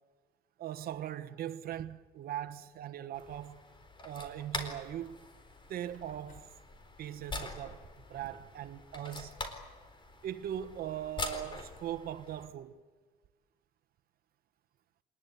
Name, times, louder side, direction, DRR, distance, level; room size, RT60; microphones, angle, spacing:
voice 1, 0.6-3.6 4.0-5.2 5.7-6.5 7.0-7.8 8.1-9.3 10.2-12.8, right 11 dB, 65° right, 1.2 m, -40 dB
sound 1, 2.4-3.2 5.0-5.1 5.4-5.6 5.9-7.4 8.5-8.6 9.2-9.5, left 3 dB, 55° left, 6.2 m, -63 dB
sound 2, 3.1-12.5, left 2 dB, 30° left, 4.1 m, -44 dB
26.0 x 20.5 x 9.4 m
cardioid pair, 110°, 16 cm